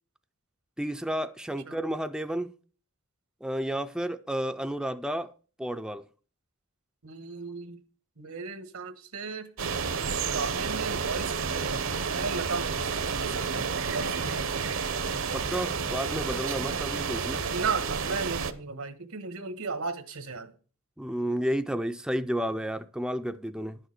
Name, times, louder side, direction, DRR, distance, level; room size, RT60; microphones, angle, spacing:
voice 1, 0.8-2.5 3.4-5.3 5.6-6.0 15.3-17.4 21.0-23.8, equal, 5° right, 0.4 m, -31 dB
voice 2, 7.0-7.8 8.2-9.5 10.0-14.4 16.7-16.8 17.5-20.5, right 4 dB, 85° right, 1.3 m, -35 dB
sound 1, 9.6-18.5, right 5 dB, 65° right, 0.9 m, -30 dB
11.0 x 6.6 x 6.4 m
head